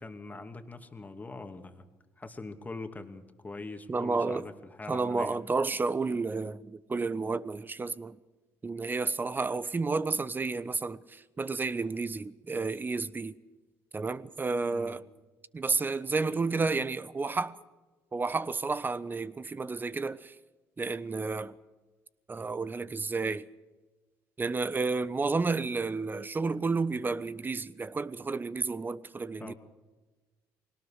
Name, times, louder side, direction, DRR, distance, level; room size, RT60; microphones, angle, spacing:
voice 1, 0.0-1.9 2.2-5.4 14.7-15.0 29.4-29.5, left 3 dB, 20° left, 2.5 m, -43 dB
voice 2, 3.9-4.5 4.9-8.2 8.6-13.3 13.9-15.0 15.5-17.6 18.1-20.3 20.8-21.5 22.3-23.5 24.4-29.5, right 4 dB, 25° right, 1.1 m, -31 dB
21.5 x 18.5 x 6.6 m
supercardioid pair, 65°, 7 cm